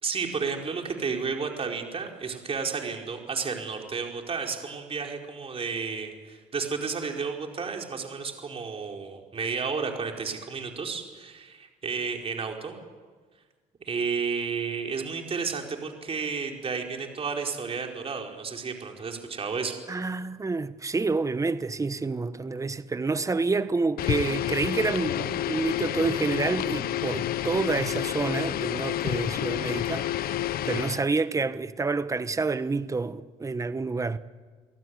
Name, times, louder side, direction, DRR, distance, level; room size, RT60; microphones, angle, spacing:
voice 1, 0.0-12.8 13.8-19.8, right 5 dB, 35° right, 4.5 m, -32 dB
voice 2, 19.9-34.2, right 3 dB, 20° right, 1.1 m, -28 dB
sound 1, 24.0-31.1, left 12 dB, 60° left, 0.8 m, -29 dB
29.0 x 18.0 x 9.6 m
cardioid pair, 110°, 17 cm